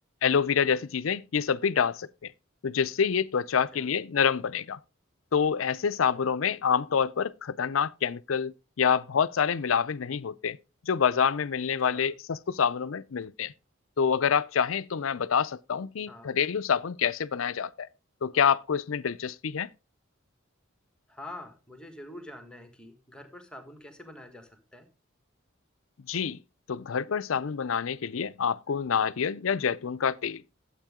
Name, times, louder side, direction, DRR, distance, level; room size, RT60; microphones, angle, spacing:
voice 1, 0.2-2.3 2.6-4.8 5.3-10.6 10.8-13.5 14.0-17.9 18.2-19.7 26.1-26.4 26.7-30.4, left 7 dB, 85° left, 0.5 m, -27 dB
voice 2, 21.1-24.9, left 1 dB, 5° left, 1.6 m, -46 dB
12.0 x 8.2 x 3.7 m
head